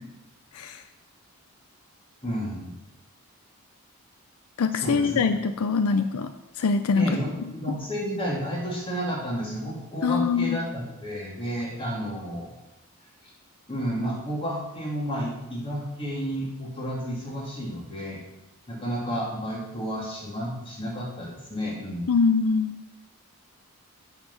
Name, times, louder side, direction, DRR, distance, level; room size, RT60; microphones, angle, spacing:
voice 1, 2.2-2.7 4.7-5.1 6.9-12.5 13.7-18.2 18.7-22.1, equal, 25° left, -3 dB, 2.3 m, -31 dB
voice 2, 4.6-6.3 6.6-7.2 10.0-10.6 22.1-22.8, left 5 dB, 80° left, 10 dB, 0.5 m, -23 dB
7.0 x 5.9 x 6.9 m, 0.95 s
head